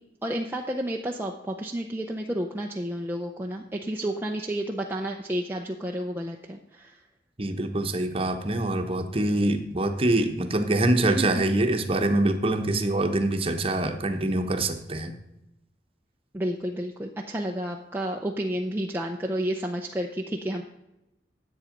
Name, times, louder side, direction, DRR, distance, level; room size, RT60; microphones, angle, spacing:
voice 1, 0.2-7.0 11.0-11.3 12.7-12.8 16.3-20.6, right 1 dB, 10° right, 0 dB, 0.6 m, -31 dB
voice 2, 7.4-15.1, right 1 dB, 30° right, 6 dB, 1.0 m, -25 dB
10.5 x 8.1 x 5.2 m, 0.90 s
head